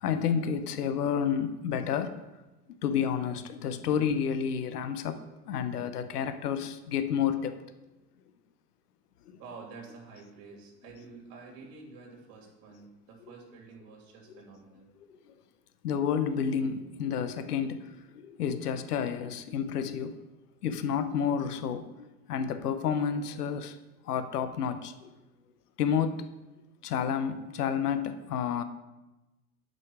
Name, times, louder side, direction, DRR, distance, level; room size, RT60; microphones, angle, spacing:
voice 1, 0.0-2.2 2.8-7.5 15.8-20.1 20.6-21.9 22.3-23.8 24.1-25.1 25.8-26.2 26.8-28.6, left 7 dB, 90° left, 10 dB, 0.8 m, -30 dB
voice 2, 9.4-14.8, right 4 dB, 50° right, 0 dB, 2.9 m, -49 dB
8.8 x 5.3 x 4.7 m, 1.1 s
hypercardioid pair, 100°, 45 cm